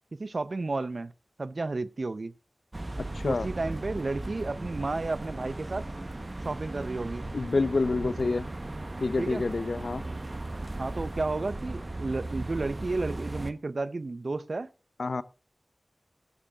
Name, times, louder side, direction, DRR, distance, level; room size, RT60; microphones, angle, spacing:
voice 1, 0.1-1.1 1.4-2.3 3.2-5.8 6.4-7.3 9.2-9.4 10.8-14.7, right 3 dB, 75° right, 0.6 m, -32 dB
sound 1, 2.7-13.5, right 2 dB, 45° right, 1.0 m, -37 dB
voice 2, 3.1-3.5 7.3-8.5 9.0-10.0 15.0-15.2, left 3 dB, 90° left, 0.6 m, -27 dB
19.5 x 11.5 x 2.4 m
wide cardioid pair, 40°, 0 cm